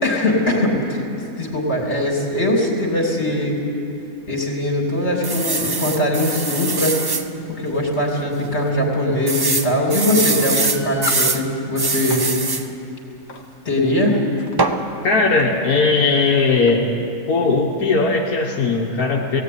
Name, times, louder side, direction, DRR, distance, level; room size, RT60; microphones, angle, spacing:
voice 1, 0.0-1.0 1.4-3.5 4.3-7.0 7.5-12.3 13.6-14.2, left 1 dB, 50° left, 0 dB, 3.3 m, -21 dB
sound 1, 5.2-7.3 7.8-7.9 8.2-8.3 9.3-11.4 11.8-12.7 14.6-14.8, right 3 dB, 20° right, 0.6 m, -22 dB
sound 2, 10.6-11.3 11.9-12.3 13.3-13.5 14.2-14.6 15.4-15.5 15.8-15.9 16.7-16.8, left 3 dB, 65° left, 1.9 m, -33 dB
voice 2, 15.0-16.9 17.3-19.4, left 4 dB, 80° left, -1 dB, 1.7 m, -18 dB
17.0 x 16.5 x 9.5 m, 2.8 s
omnidirectional pair, 1.5 m